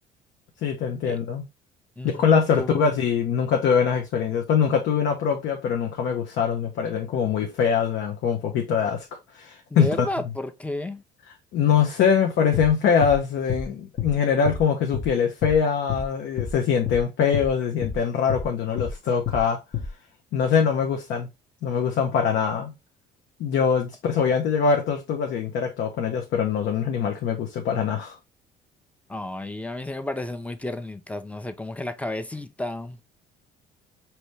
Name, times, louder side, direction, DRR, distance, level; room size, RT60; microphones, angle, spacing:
voice 1, 0.6-1.4 2.0-10.1 11.5-19.6 20.3-21.3 21.6-22.7 23.4-28.2, left 6 dB, 60° left, 0.9 m, -23 dB
voice 2, 2.0-2.8 9.7-11.0 29.1-33.0, left 1 dB, 5° left, 0.7 m, -32 dB
sound 1, 12.5-12.7 13.0-13.2 13.5-13.7 14.0-14.1 14.4-14.6 14.9-15.1 15.4-15.6 15.9-16.1 16.4-16.5 16.9-17.0 17.3-17.5 17.8-18.0 18.3-18.5 18.8-18.9 19.3-19.4 19.7-19.9, left 7 dB, 40° left, 1.2 m, -29 dB
5.1 x 2.9 x 3.2 m
hypercardioid pair, 60°, 21 cm